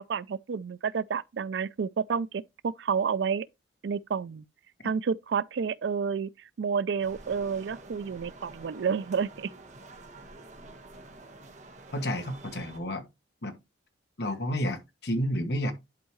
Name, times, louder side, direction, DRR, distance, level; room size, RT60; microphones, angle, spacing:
voice 1, 0.0-3.5 3.8-4.4 4.8-6.3 6.6-9.5, right 6 dB, 70° right, 0.4 m, -30 dB
sound 1, 7.0-12.8, right 2 dB, 40° right, 1.3 m, -48 dB
voice 2, 11.9-13.0 13.4-13.6 14.2-15.7, equal, 60° left, 1.2 m, -30 dB
10.5 x 4.6 x 3.0 m
head